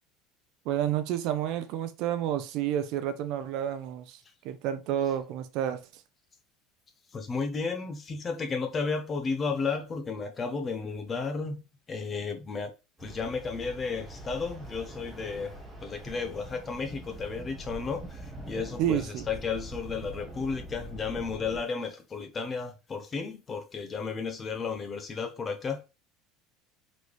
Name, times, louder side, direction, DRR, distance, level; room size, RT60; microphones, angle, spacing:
voice 1, 0.7-4.2 4.4-6.0 18.8-19.3, right 10 dB, 50° right, 0.5 m, -30 dB
voice 2, 7.1-12.7 13.0-15.5 15.8-25.8, left 4 dB, 20° left, 0.5 m, -33 dB
sound 1, 13.0-21.6, right 1 dB, 5° right, 1.1 m, -43 dB
4.0 x 3.1 x 3.3 m
cardioid pair, 170°, 0 cm